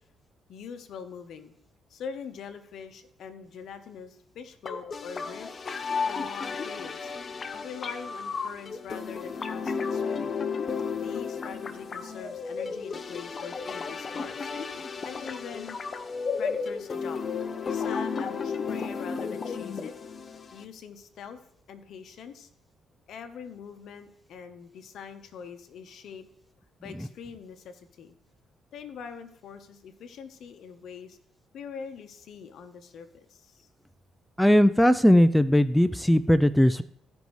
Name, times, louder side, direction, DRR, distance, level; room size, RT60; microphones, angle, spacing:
voice 1, 0.5-1.5 1.9-5.5 6.0-7.1 7.6-10.4 10.9-14.5 15.0-15.8 16.4-17.2 17.7-19.9 20.5-21.4 21.7-22.5 23.1-26.3 26.8-28.1 28.7-31.2 31.5-33.7, left 6 dB, 70° left, 9 dB, 0.9 m, -43 dB
sound 1, 4.7-20.6, left 5 dB, 40° left, 0.6 m, -33 dB
voice 2, 34.4-36.8, equal, 5° left, 13 dB, 0.3 m, -19 dB
15.0 x 5.3 x 3.1 m, 0.68 s
cardioid pair, 90°, 0 cm